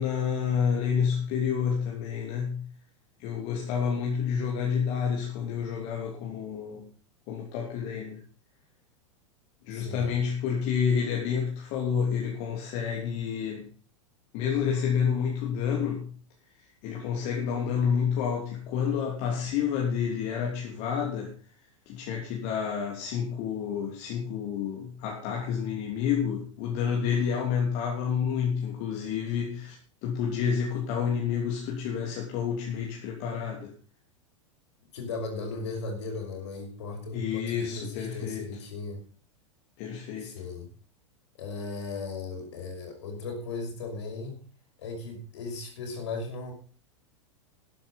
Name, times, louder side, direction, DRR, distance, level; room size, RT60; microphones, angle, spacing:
voice 1, 0.0-2.6 3.2-6.8 7.3-8.2 9.6-13.7 14.3-16.1 16.8-21.3 21.9-29.8 30.0-33.7 37.1-38.5 39.8-40.3, left 7 dB, 45° left, -1 dB, 3.1 m, -29 dB
voice 2, 9.7-10.1 34.9-39.0 40.2-40.7 41.3-44.4 44.8-46.5, left 3 dB, 60° left, 3 dB, 5.6 m, -37 dB
13.0 x 10.5 x 5.3 m, 0.40 s
figure-of-eight pair, 90°, 17 cm